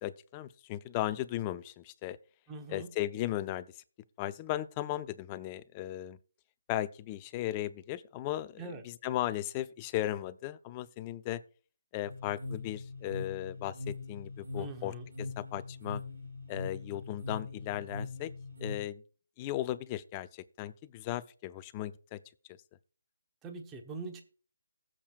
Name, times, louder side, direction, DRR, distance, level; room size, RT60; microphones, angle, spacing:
voice 1, 0.0-2.2 2.7-3.7 4.2-6.2 6.7-11.4 11.9-16.0 16.5-18.3 18.6-19.0 19.4-22.2, left 14 dB, 20° left, 0.5 m, -36 dB
voice 2, 2.5-2.9 8.6-8.8 14.6-15.1 23.4-24.2, right 3 dB, 10° right, 1.1 m, -43 dB
sound 1, 12.0-18.8, left 3 dB, 65° right, 5.5 m, -41 dB
19.5 x 7.4 x 2.4 m
hypercardioid pair, 165°, 0 cm